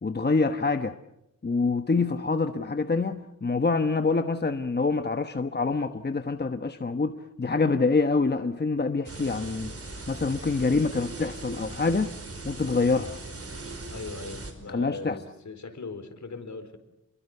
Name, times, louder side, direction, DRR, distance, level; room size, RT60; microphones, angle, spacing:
voice 1, 0.0-0.9 1.4-9.7 10.1-12.1 12.4-13.1 14.7-15.2, left 4 dB, 35° left, 1.1 m, -26 dB
sound 1, 9.0-14.5, right 2 dB, 50° right, 5.0 m, -39 dB
voice 2, 13.9-16.8, left 3 dB, 65° left, 4.5 m, -39 dB
29.0 x 22.5 x 6.8 m
wide cardioid pair, 115°, 31 cm